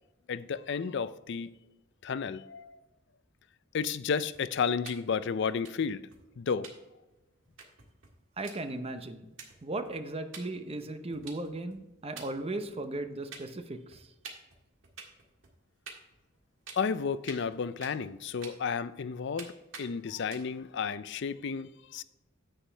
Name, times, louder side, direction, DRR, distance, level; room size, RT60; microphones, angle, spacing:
voice 1, 0.3-1.5 2.0-2.8 3.7-6.0 6.4-6.7 16.8-22.0, left 6 dB, 60° left, 0.4 m, -32 dB
sound 1, 4.3-4.9 5.2-5.3 5.5-5.7 6.1-6.3 6.6-6.7 7.1-7.2 7.5-8.2 8.4-8.5 9.0-9.1 9.4-10.0 10.3-10.4 10.8-11.8 12.2-13.1 13.3-13.7 13.9-15.6 15.9-16.4 16.7-18.1 18.4-19.1 19.4-19.5 19.7-19.9 20.2-20.7, right 6 dB, 75° right, 1.8 m, -48 dB
voice 2, 8.4-9.3 9.6-14.1, right 2 dB, 30° right, 0.7 m, -37 dB
9.9 x 8.0 x 3.4 m
head